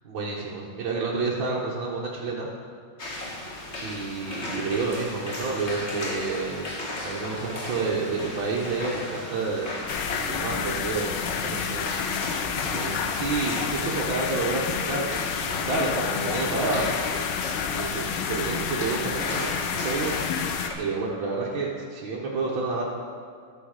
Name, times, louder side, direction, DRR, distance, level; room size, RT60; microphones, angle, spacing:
voice 1, 0.1-2.5 3.8-6.6 7.0-9.7 10.3-20.2 20.8-22.8, right 3 dB, 70° right, -5 dB, 1.8 m, -30 dB
sound 1, 3.0-20.7, left 1 dB, 35° left, 1.7 m, -35 dB
sound 2, 9.9-20.7, left 7 dB, 85° left, 1.5 m, -30 dB
13.5 x 4.7 x 6.4 m, 2.1 s
omnidirectional pair, 2.2 m